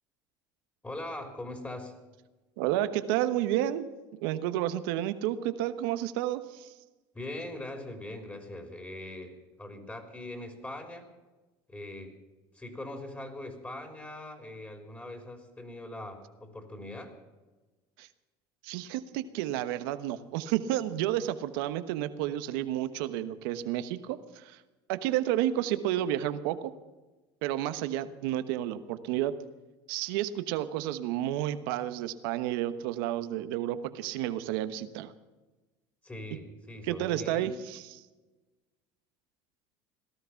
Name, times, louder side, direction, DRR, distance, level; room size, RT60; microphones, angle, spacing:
voice 1, 0.8-2.0 7.1-11.1 11.7-12.2 12.5-17.2 36.0-37.6, left 1 dB, 15° left, 5 dB, 3.4 m, -41 dB
voice 2, 2.6-3.9 4.2-6.7 18.0-18.1 18.6-24.6 24.9-26.7 27.4-29.3 29.9-35.1 36.8-37.8, right 12 dB, 85° right, 11 dB, 1.1 m, -31 dB
18.0 x 13.0 x 5.8 m, 1.2 s
supercardioid pair, 105°, 11 cm